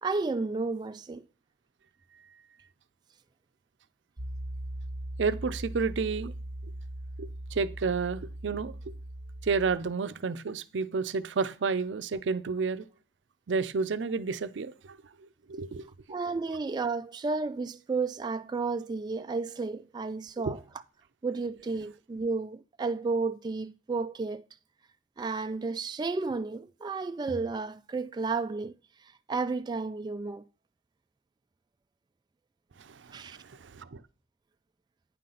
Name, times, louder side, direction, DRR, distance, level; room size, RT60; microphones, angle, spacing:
voice 1, 0.0-1.2 16.1-20.6 21.2-24.4 25.2-28.7 29.0-30.5 33.1-33.4, right 4 dB, 25° right, 0.3 m, -32 dB
Piano, 4.2-9.8, right 1 dB, 45° right, 1.0 m, -39 dB
voice 2, 5.2-6.3 6.6-6.7 7.2-8.9 9.4-12.8 13.5-15.9 20.4-20.5 32.8-34.0, right 4 dB, 85° right, 0.5 m, -31 dB
9.1 x 5.7 x 3.9 m
head